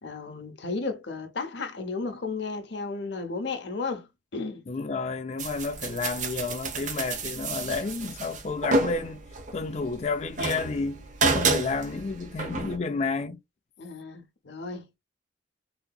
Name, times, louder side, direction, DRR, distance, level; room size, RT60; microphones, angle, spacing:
voice 1, 0.0-4.6 13.8-15.0, left 4 dB, 65° left, 0.9 m, -34 dB
voice 2, 4.7-9.2 9.5-11.1 11.3-13.4, left 4 dB, 35° left, 0.4 m, -31 dB
sound 1, 5.4-12.8, right 3 dB, 40° right, 0.8 m, -30 dB
3.8 x 2.8 x 2.3 m
head